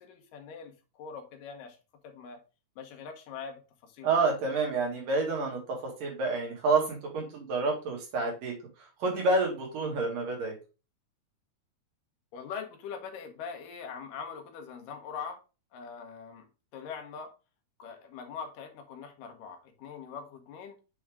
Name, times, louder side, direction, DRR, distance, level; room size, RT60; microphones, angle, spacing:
voice 1, 0.0-1.8 2.0-2.4 2.8-4.1 12.3-15.4 15.7-16.5 16.7-17.3 17.8-20.8, left 6 dB, 85° left, 2.7 m, -42 dB
voice 2, 4.0-8.5 9.0-10.5, right 3 dB, 85° right, 3.6 m, -28 dB
7.7 x 3.6 x 3.5 m
omnidirectional pair, 3.7 m